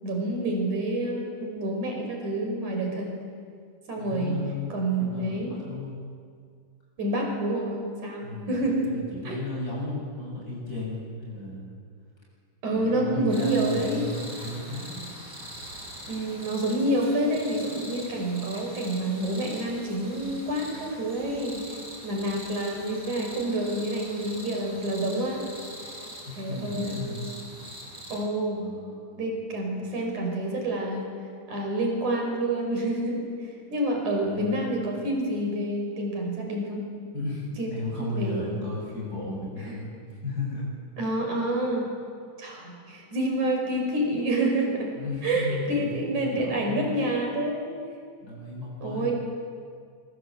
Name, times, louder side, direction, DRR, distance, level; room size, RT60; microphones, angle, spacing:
voice 1, 0.0-3.1 3.9-4.4 4.7-5.6 7.0-8.9 9.2-9.4 12.6-14.1 16.1-21.6 22.0-25.4 26.4-27.1 28.1-28.6 29.2-31.1 31.5-33.3 33.7-36.8 37.6-37.7 38.0-38.5 39.6-39.8 41.0-41.9 42.4-44.9 45.2-47.7 48.8-49.1, right 1 dB, 80° right, 1 dB, 6.7 m, -28 dB
voice 2, 4.0-6.0 8.2-11.7 12.7-15.0 26.5-27.2 28.6-29.4 34.2-34.6 37.1-39.9 40.2-40.7 45.0-47.0 48.2-49.1, left 2 dB, 30° left, -3 dB, 8.3 m, -34 dB
sound 1, 13.3-28.2, equal, 25° right, 8.6 m, -42 dB
25.5 x 24.0 x 8.0 m, 2.2 s
omnidirectional pair, 3.4 m